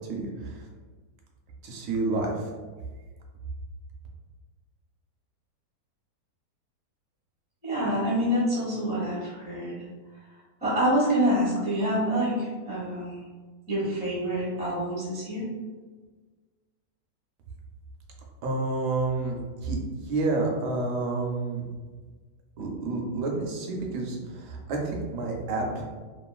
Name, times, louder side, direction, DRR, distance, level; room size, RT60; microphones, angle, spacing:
voice 1, 0.1-0.7 1.6-2.4 18.4-19.8 20.0-21.7 22.6-25.9, right 3 dB, 80° right, 0 dB, 1.2 m, -29 dB
voice 2, 7.6-9.8 10.6-13.2 13.7-15.5, equal, 5° right, -9 dB, 0.7 m, -26 dB
3.0 x 2.5 x 2.3 m, 1.4 s
omnidirectional pair, 1.8 m